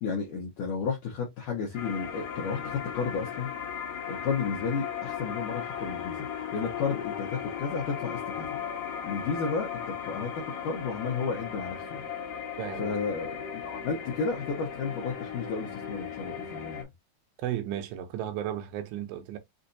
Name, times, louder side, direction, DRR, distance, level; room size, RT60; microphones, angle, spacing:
voice 1, 0.0-3.5 4.1-8.6 9.0-12.1 12.8-16.9, left 5 dB, 75° left, 1.9 m, -32 dB
sound 1, 1.7-16.8, left 8 dB, 60° left, 2.4 m, -37 dB
voice 2, 12.6-13.0 17.4-19.4, right 11 dB, 80° right, 2.9 m, -34 dB
6.6 x 2.5 x 2.6 m
omnidirectional pair, 5.1 m